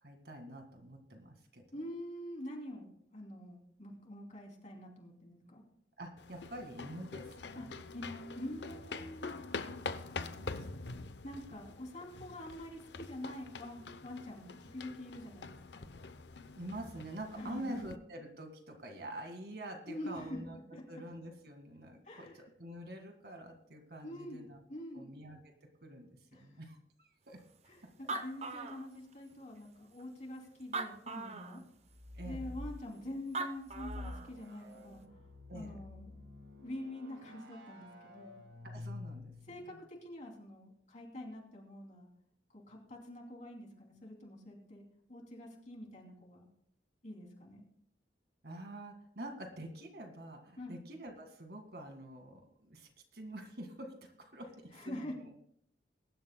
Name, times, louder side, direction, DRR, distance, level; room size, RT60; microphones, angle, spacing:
voice 1, 0.0-1.6 6.0-7.8 8.9-9.0 10.4-10.8 16.5-24.6 24.9-27.4 28.5-28.7 32.1-32.5 35.5-35.8 38.6-39.3 48.4-55.3, right 1 dB, 60° right, 5 dB, 2.0 m, -47 dB
voice 2, 1.7-5.6 7.5-7.7 7.9-9.4 11.2-15.9 17.4-17.9 19.9-20.4 20.7-20.8 22.0-22.4 24.0-24.4 24.7-25.1 26.3-26.6 27.7-31.6 32.2-35.2 35.5-36.1 36.6-38.4 39.5-42.1 42.5-46.5 47.0-47.6 50.6-50.7 54.7-55.2, left 1 dB, 45° left, -1 dB, 3.1 m, -46 dB
sound 1, 6.2-18.0, left 4 dB, 75° left, 0.7 m, -45 dB
Animal, 27.6-27.7 27.9-29.3 30.0-30.1 30.6-31.6 33.1-33.2 33.3-34.3, right 3 dB, 40° right, 0.8 m, -40 dB
sound 2, 31.9-32.8 33.6-39.7, left 2 dB, 90° right, 1.7 m, -48 dB
22.5 x 11.5 x 2.3 m, 0.67 s
head